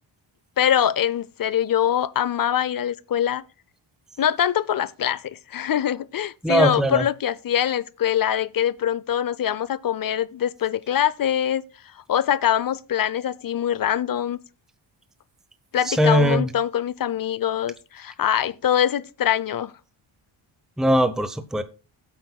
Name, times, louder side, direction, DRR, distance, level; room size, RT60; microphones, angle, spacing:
voice 1, 0.6-3.4 4.2-11.6 12.1-14.4 15.7-19.7, left 10 dB, 45° left, 0.6 m, -23 dB
voice 2, 6.4-7.1 15.8-16.5 20.8-21.6, equal, ahead, 0.8 m, -20 dB
16.0 x 8.1 x 2.3 m
cardioid pair, 95°, 49 cm